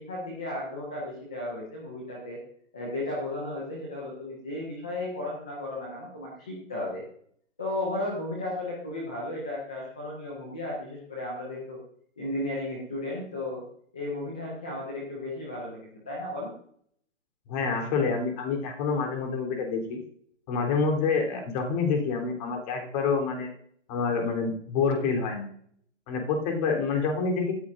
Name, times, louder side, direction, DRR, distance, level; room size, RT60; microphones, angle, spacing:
voice 1, 0.0-2.4 2.7-7.0 7.6-11.8 12.2-13.6 13.9-15.8 16.1-16.5, left 1 dB, 5° left, -3 dB, 0.4 m, -34 dB
voice 2, 17.5-20.0 20.5-23.5 23.9-25.5 26.1-27.6, left 5 dB, 30° left, 2 dB, 3.6 m, -27 dB
17.0 x 14.0 x 2.6 m, 0.64 s
hypercardioid pair, 145°, 38 cm